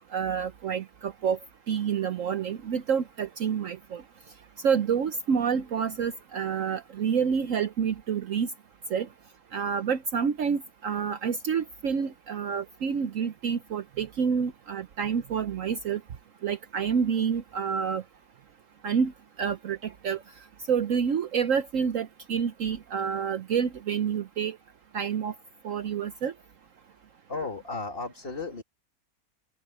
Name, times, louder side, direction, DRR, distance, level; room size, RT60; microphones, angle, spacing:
voice 1, 0.1-1.4 1.7-4.0 4.6-8.5 8.9-9.1 9.5-16.0 16.4-18.0 18.8-19.1 19.4-20.2 20.7-24.6 24.9-25.3 25.6-26.3, right 7 dB, 65° right, 1.1 m, -28 dB
voice 2, 27.3-28.6, left 3 dB, 40° left, 2.7 m, -34 dB
open air
omnidirectional pair, 1.6 m